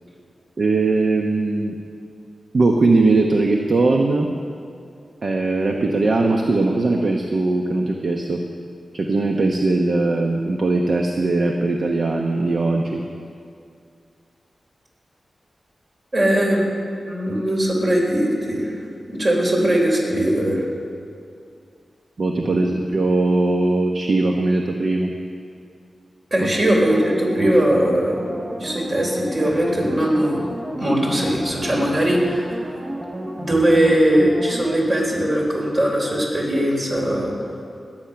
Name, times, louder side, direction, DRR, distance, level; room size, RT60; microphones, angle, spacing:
voice 1, 0.6-1.7 2.5-4.3 5.2-8.4 8.9-13.0 22.2-25.1 26.4-26.5, right 3 dB, 60° right, 2 dB, 0.9 m, -20 dB
voice 2, 16.1-16.7 17.1-18.8 19.1-20.7 22.4-22.7 26.3-30.4 30.8-32.6 33.3-37.3, right 1 dB, 40° right, -2 dB, 3.9 m, -20 dB
sound 1, 26.8-36.1 36.5-36.6, right 1 dB, 20° right, 0.8 m, -33 dB
20.5 x 8.9 x 5.8 m, 2.4 s
wide cardioid pair, 95°, 0 cm